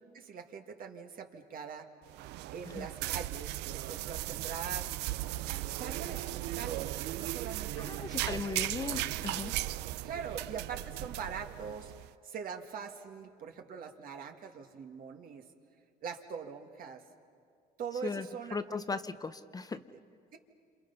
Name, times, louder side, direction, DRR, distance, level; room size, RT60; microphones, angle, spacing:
voice 1, 0.1-1.9 2.5-5.0 5.6-8.5 10.0-15.5 16.0-17.0 17.8-19.0 19.7-19.8 20.3-20.4, right 6 dB, 60° right, 4 dB, 2.1 m, -43 dB
sound 1, 2.1-12.1, right 16 dB, 85° right, 0.5 m, -37 dB
voice 2, 7.8-9.5 18.0-18.3 18.5-19.8, left 4 dB, 20° left, 11 dB, 0.7 m, -37 dB
28.0 x 28.0 x 5.7 m, 2.3 s
cardioid pair, 110°, 17 cm